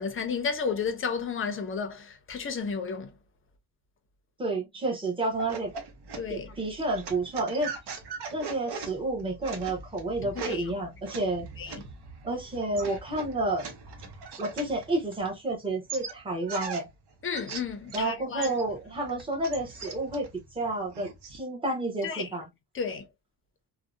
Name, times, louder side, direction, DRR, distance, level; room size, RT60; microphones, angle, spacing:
voice 1, 0.0-3.1 6.1-6.5 10.4-10.7 11.6-11.8 17.2-18.6 22.0-22.3 22.7-23.1, left 5 dB, 35° left, 0.4 m, -32 dB
voice 2, 4.4-5.7 6.3-7.7 8.3-11.5 12.2-13.7 14.4-16.9 17.9-20.3 20.5-22.5, right 2 dB, 15° right, 0.7 m, -30 dB
sound 1, 5.3-15.5 15.9-18.1 18.4-21.4, right 5 dB, 75° right, 0.7 m, -41 dB
2.6 x 2.1 x 2.3 m
wide cardioid pair, 180°, 40 cm